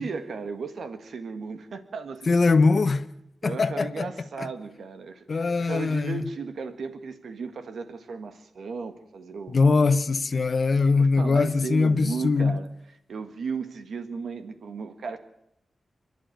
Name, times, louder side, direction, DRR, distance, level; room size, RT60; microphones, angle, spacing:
voice 1, 0.0-2.3 3.4-9.6 11.0-15.2, right 5 dB, 80° right, 1.7 m, -35 dB
voice 2, 2.3-3.0 3.4-4.1 5.3-6.2 9.5-12.6, left 4 dB, 50° left, 1.1 m, -22 dB
28.5 x 11.0 x 9.4 m
wide cardioid pair, 90°, 0 cm